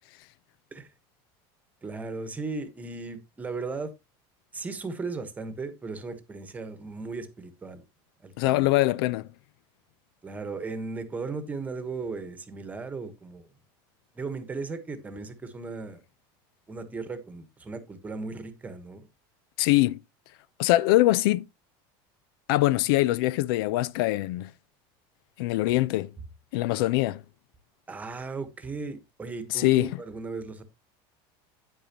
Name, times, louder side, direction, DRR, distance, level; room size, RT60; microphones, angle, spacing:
voice 1, 1.8-3.9 4.5-7.8 8.2-8.7 10.2-13.5 14.1-16.0 16.7-19.1 27.9-30.6, right 4 dB, 10° right, 1.2 m, -36 dB
voice 2, 8.4-9.3 19.6-20.0 20.6-21.4 22.5-24.5 25.4-26.1 26.5-27.2 29.5-29.9, left 17 dB, 75° left, 0.5 m, -23 dB
9.5 x 8.8 x 2.9 m
cardioid pair, 165°, 12 cm